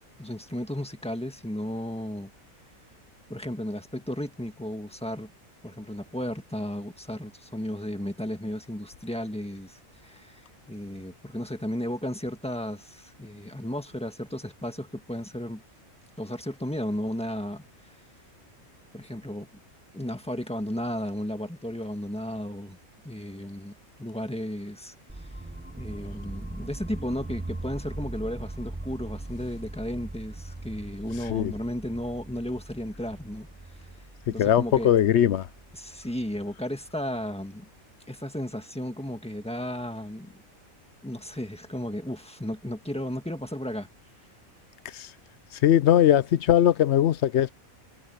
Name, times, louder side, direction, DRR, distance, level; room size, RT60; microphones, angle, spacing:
voice 1, 0.2-2.3 3.3-5.3 5.6-10.4 10.7-15.6 16.2-17.6 18.9-19.5 19.9-22.8 23.0-25.3 25.8-33.5 34.3-34.9 35.7-37.7 38.1-40.3 41.0-43.9, left 1 dB, 5° left, 1.6 m, -34 dB
sound 1, 25.1-37.0, right 2 dB, 10° right, 0.5 m, -40 dB
voice 2, 34.3-35.5 44.9-45.1 45.6-47.5, left 11 dB, 65° left, 0.8 m, -20 dB
omnidirectional pair, 1.4 m